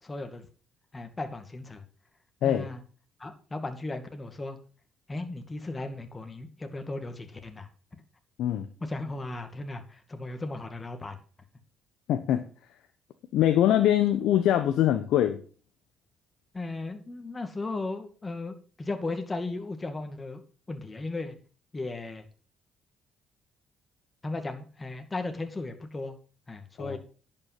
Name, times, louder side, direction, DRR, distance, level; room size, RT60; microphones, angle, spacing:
voice 1, 0.0-0.5 0.9-1.8 2.4-2.8 3.2-4.6 5.1-7.7 8.8-11.2 16.5-20.4 20.7-21.3 21.7-22.2 24.2-26.2 26.5-27.0, left 2 dB, 25° left, 6 dB, 2.3 m, -36 dB
voice 2, 12.1-12.4 13.3-15.4 26.8-27.0, left 11 dB, 75° left, 8 dB, 1.0 m, -23 dB
10.5 x 5.8 x 7.7 m, 0.39 s
supercardioid pair, 60°, 0 cm